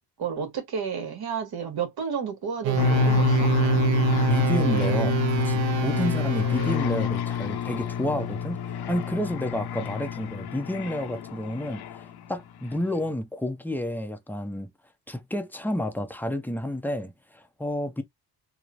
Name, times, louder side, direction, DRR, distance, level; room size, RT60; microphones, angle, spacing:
voice 1, 0.2-3.5, right 6 dB, 55° right, 1.1 m, -31 dB
sound 1, 2.6-7.1, right 14 dB, 85° right, 0.7 m, -26 dB
sound 2, 2.8-12.3, left 10 dB, 60° left, 0.6 m, -27 dB
voice 2, 4.3-8.6 8.9-11.8 12.3-14.7 15.1-18.0, left 1 dB, 5° left, 0.5 m, -30 dB
3.0 x 2.0 x 2.4 m
cardioid pair, 80°, 44 cm